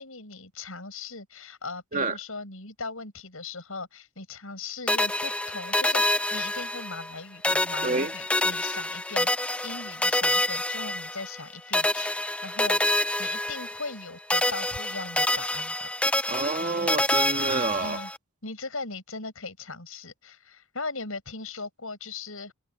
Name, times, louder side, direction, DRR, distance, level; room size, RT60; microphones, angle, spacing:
voice 1, 0.0-9.3 9.6-12.8 13.2-15.9 17.8-18.1 18.4-22.5, left 3 dB, 70° left, 7.4 m, -39 dB
sound 1, 4.9-7.2 7.4-11.4 11.7-14.0 14.3-18.2, left 1 dB, 5° left, 0.4 m, -27 dB
voice 2, 16.3-18.0, right 3 dB, 35° right, 1.6 m, -28 dB
head